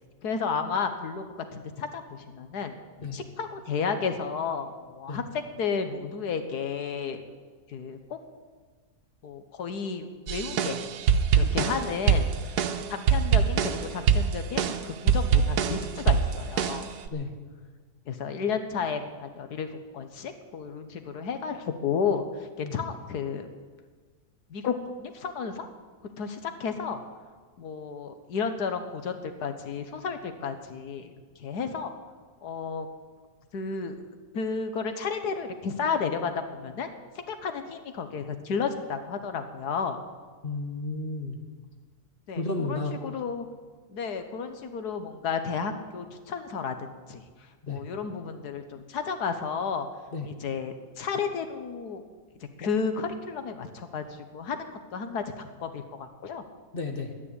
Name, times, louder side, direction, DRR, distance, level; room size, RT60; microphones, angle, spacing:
voice 1, 0.2-1.2 1.5-2.8 3.1-7.2 7.7-8.2 9.2-10.8 11.3-12.3 12.8-16.9 18.1-23.5 24.5-25.7 26.2-27.0 27.6-31.1 31.4-31.9 32.4-32.9 33.5-34.0 34.3-36.9 37.1-40.0 42.3-43.5 43.9-47.2 47.7-49.9 50.2-52.0 52.6-56.4, left 5 dB, 85° left, 8 dB, 1.7 m, -32 dB
sound 1, 10.3-17.1, right 7 dB, 90° right, 1.4 m, -24 dB
voice 2, 40.4-41.4 42.4-42.9 47.6-47.8 50.1-50.3 56.7-57.1, left 3 dB, 35° left, 3 dB, 1.6 m, -32 dB
12.0 x 9.8 x 9.9 m, 1.5 s
omnidirectional pair, 1.7 m